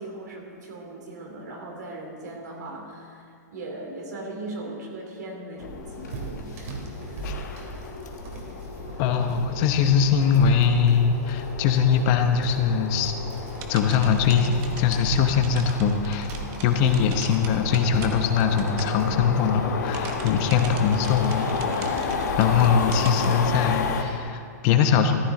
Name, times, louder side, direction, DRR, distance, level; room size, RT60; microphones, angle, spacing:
voice 1, 0.0-3.2 3.5-6.5 7.0-7.3, right 2 dB, 80° right, -1 dB, 3.0 m, -38 dB
sound 1, 5.6-24.0, left 5 dB, 80° left, 1.3 m, -32 dB
sound 2, 5.9-22.8, right 2 dB, 55° right, 2.5 m, -38 dB
voice 2, 9.0-13.2 13.7-16.3 16.6-21.5 21.8-25.2, left 7 dB, 35° left, 7 dB, 0.8 m, -22 dB
sound 3, 13.5-19.4 19.7-23.4, right 5 dB, 35° right, 1.1 m, -42 dB
14.0 x 11.0 x 3.8 m, 2.3 s
hypercardioid pair, 150°, 9 cm